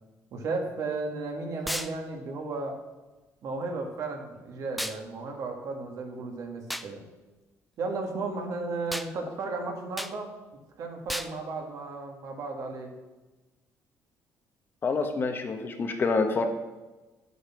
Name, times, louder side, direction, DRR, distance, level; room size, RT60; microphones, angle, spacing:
voice 1, 0.3-2.8 3.4-7.0 7.8-12.9, right 3 dB, 60° right, 2 dB, 2.0 m, -34 dB
sound 1, 1.7-1.9 4.8-5.0 6.7-6.9 8.9-9.1 10.0-10.2 11.1-11.3, equal, ahead, 0.4 m, -33 dB
voice 2, 14.8-16.5, left 4 dB, 35° left, 5 dB, 1.2 m, -27 dB
9.9 x 8.2 x 5.9 m, 1.2 s
cardioid pair, 140°, 6 cm